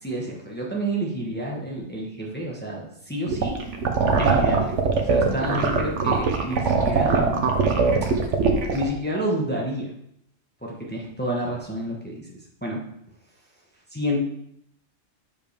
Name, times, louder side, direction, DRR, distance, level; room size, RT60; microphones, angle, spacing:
voice 1, 0.0-3.6 4.2-7.5 8.7-9.9 10.6-12.3 12.6-12.8 13.9-14.2, right 1 dB, 10° left, -3 dB, 1.1 m, -29 dB
sound 1, 3.3-8.8, right 5 dB, 70° right, 1.2 m, -21 dB
7.0 x 5.2 x 3.4 m, 0.72 s
omnidirectional pair, 1.3 m